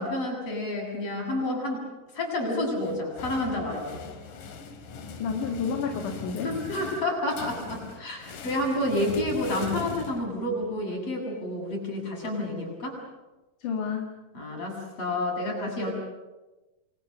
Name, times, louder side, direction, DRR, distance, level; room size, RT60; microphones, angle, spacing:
voice 1, 0.0-1.8 2.1-4.0 6.4-13.0 14.3-15.9, left 1 dB, 50° left, 0 dB, 9.0 m, -29 dB
sound 1, 2.8-10.7, left 4 dB, 85° left, 3.9 m, -41 dB
voice 2, 5.2-7.0 13.6-14.1, left 6 dB, 70° left, 3 dB, 3.6 m, -31 dB
29.5 x 24.5 x 6.9 m, 1.1 s
omnidirectional pair, 3.7 m